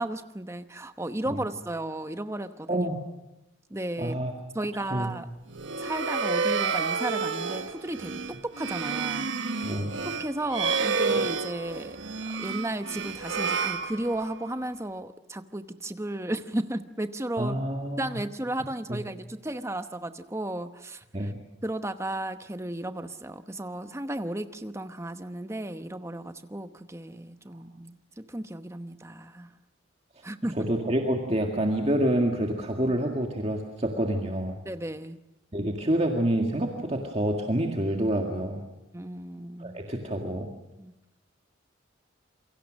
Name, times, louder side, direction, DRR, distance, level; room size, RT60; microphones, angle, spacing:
voice 1, 0.0-2.9 3.7-4.2 4.5-5.3 5.8-9.7 10.0-12.0 12.3-17.6 18.0-21.3 21.6-29.5 30.2-30.7 34.6-35.2 38.9-39.8 40.8-40.9, right 1 dB, 15° right, 9 dB, 0.9 m, -34 dB
voice 2, 2.7-3.0 4.0-4.3 4.9-5.1 9.6-9.9 17.4-18.2 18.9-19.0 21.1-21.4 30.6-34.6 35.5-38.6 39.6-40.5, right 1 dB, 30° right, 1 dB, 1.9 m, -27 dB
sound 1, 5.5-14.5, right 5 dB, 70° right, 1.2 m, -30 dB
28.0 x 23.5 x 6.4 m, 0.94 s
head